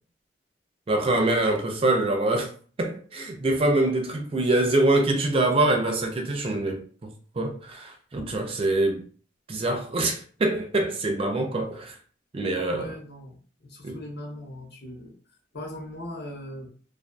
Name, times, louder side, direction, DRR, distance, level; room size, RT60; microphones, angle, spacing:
voice 1, 0.9-2.5 2.8-7.1 7.4-9.0 9.5-12.0 12.3-12.9 13.8-14.0, right 2 dB, 30° right, 0.4 m, -24 dB
voice 2, 12.7-15.1 15.5-16.7, left 1 dB, 55° left, 0.7 m, -39 dB
2.5 x 2.3 x 2.2 m
head